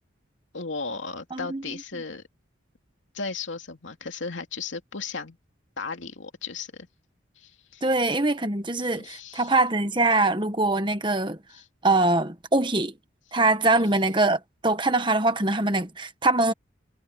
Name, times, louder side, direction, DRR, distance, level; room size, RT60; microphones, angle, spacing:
voice 1, 0.5-2.2 3.1-5.4 5.8-6.9 7.4-7.9 8.8-9.5 11.5-11.7 13.8-13.9, left 4 dB, 80° left, 2.6 m, -36 dB
voice 2, 1.3-1.6 7.8-11.4 11.8-12.9 13.3-16.5, right 2 dB, 25° right, 1.4 m, -23 dB
head